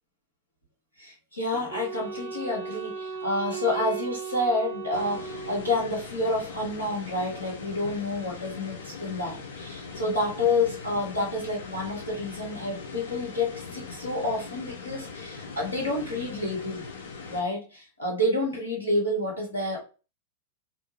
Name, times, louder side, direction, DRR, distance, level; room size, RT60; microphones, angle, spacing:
voice 1, 1.0-16.8 17.3-19.8, left 2 dB, 90° left, -3 dB, 1.2 m, -29 dB
Wind instrument woodwind instrument, 1.7-6.1, right 6 dB, 65° right, 0.4 m, -36 dB
sound 1, 4.9-17.4, left 4 dB, 70° left, 0.6 m, -41 dB
2.5 x 2.3 x 2.9 m, 0.32 s
figure-of-eight pair, 95°, 0 cm